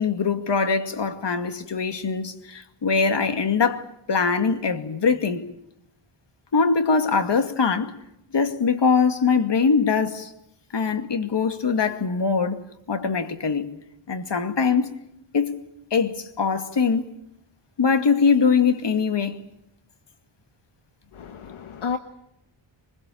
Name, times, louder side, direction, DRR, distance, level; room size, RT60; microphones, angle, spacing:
voice 1, 0.0-5.4 6.5-7.9 8.3-10.3 10.7-13.7 14.1-14.9 15.3-15.5 15.9-17.1 17.8-19.4, left 5 dB, 55° left, 2.4 m, -22 dB
voice 2, 21.1-22.0, left 6 dB, 75° left, 1.3 m, -31 dB
24.0 x 22.0 x 8.7 m
wide cardioid pair, 95°, 50 cm